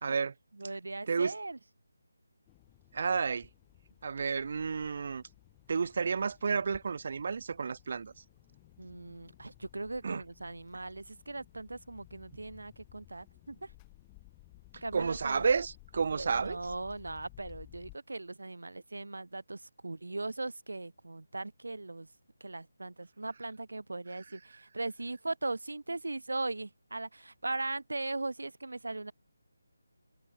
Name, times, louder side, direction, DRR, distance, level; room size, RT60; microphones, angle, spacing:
voice 1, 0.0-0.3 1.1-1.3 2.9-3.5 4.0-5.2 5.7-8.1 10.0-10.2 14.9-16.6, right 5 dB, 45° right, 0.3 m, -31 dB
voice 2, 0.5-1.6 8.8-13.7 14.8-15.5 16.1-22.1 22.4-29.1, right 2 dB, 80° right, 2.8 m, -39 dB
sound 1, 2.5-18.0, left 33 dB, 15° left, 5.8 m, -57 dB
figure-of-eight pair, 160°, 0 cm